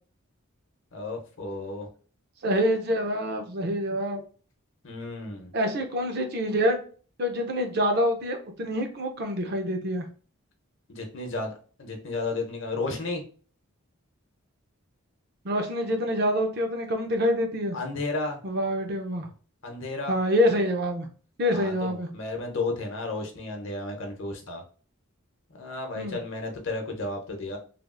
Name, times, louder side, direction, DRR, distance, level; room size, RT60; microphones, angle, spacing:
voice 1, 0.9-1.9 4.8-5.5 10.9-11.5 11.8-13.2 17.7-18.4 19.6-20.2 21.5-24.6 25.5-27.6, left 3 dB, 60° left, 3 dB, 0.8 m, -33 dB
voice 2, 2.4-4.2 5.5-6.8 7.2-10.1 15.4-17.8 18.4-19.3 20.1-21.1 21.4-22.1 26.0-26.2, equal, 45° right, 4 dB, 0.5 m, -26 dB
3.3 x 2.4 x 2.4 m, 0.39 s
head